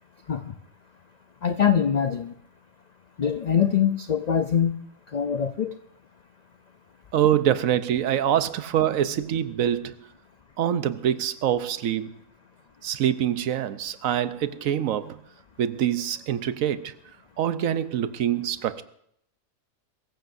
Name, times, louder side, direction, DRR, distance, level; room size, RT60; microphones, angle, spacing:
voice 1, 1.4-2.3 3.2-4.8 5.1-5.7, left 8 dB, 65° left, 0.4 m, -23 dB
voice 2, 7.1-9.9 10.6-12.2 12.8-15.2 15.6-16.9 17.4-18.8, right 10 dB, 75° right, 1.1 m, -25 dB
22.5 x 15.0 x 2.6 m
omnidirectional pair, 1.5 m